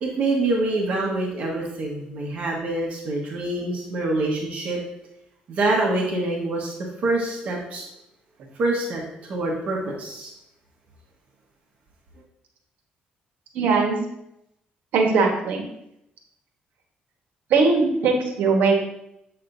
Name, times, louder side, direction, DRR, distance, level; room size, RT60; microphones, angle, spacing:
voice 1, 0.0-4.8 5.5-7.8 8.6-10.3, right 2 dB, 50° right, -1 dB, 1.4 m, -25 dB
voice 2, 13.5-14.0 14.9-15.6 17.5-18.8, right 4 dB, 80° right, 2 dB, 1.3 m, -20 dB
7.7 x 6.7 x 2.6 m, 0.79 s
cardioid pair, 145°, 3 cm